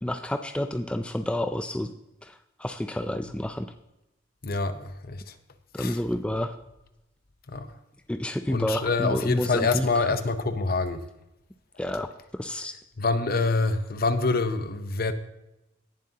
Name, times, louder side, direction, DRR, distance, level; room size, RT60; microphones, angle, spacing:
voice 1, 0.0-1.9 2.2-3.7 5.7-6.6 8.1-10.1 11.8-12.7, left 1 dB, 5° left, 0.3 m, -29 dB
voice 2, 4.4-5.2 5.8-6.0 7.5-7.7 8.5-11.0 13.0-15.1, left 3 dB, 50° left, 0.8 m, -26 dB
18.0 x 7.5 x 2.8 m
head